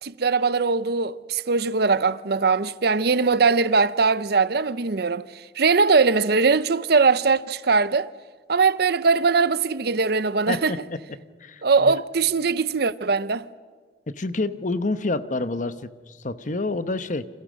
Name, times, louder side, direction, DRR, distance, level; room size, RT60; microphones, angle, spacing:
voice 1, 0.0-5.3 5.6-8.1 8.5-10.7 11.6-13.4, right 4 dB, 60° right, 0.7 m, -21 dB
voice 2, 10.5-11.0 11.4-11.9 14.1-17.3, left 2 dB, 45° left, 1.0 m, -28 dB
28.5 x 27.0 x 6.4 m
head